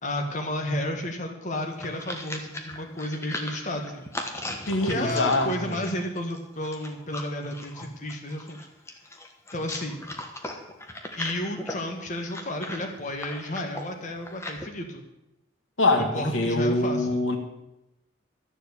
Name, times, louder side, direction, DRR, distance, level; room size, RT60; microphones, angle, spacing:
voice 1, 0.0-4.1 4.8-8.6 9.5-10.1 11.2-15.0 16.0-17.2, left 1 dB, 40° left, 2 dB, 1.6 m, -32 dB
sound 1, 1.5-14.7, left 1 dB, 15° left, 1.3 m, -38 dB
voice 2, 4.7-5.8 15.8-17.4, left 2 dB, 85° left, 4 dB, 1.9 m, -24 dB
13.0 x 7.2 x 8.4 m, 0.92 s
head